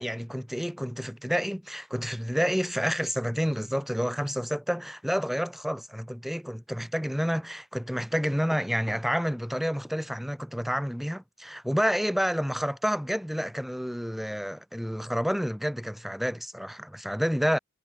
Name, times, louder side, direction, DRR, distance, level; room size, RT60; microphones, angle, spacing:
voice 1, 0.0-17.6, equal, ahead, 1.0 m, -29 dB
head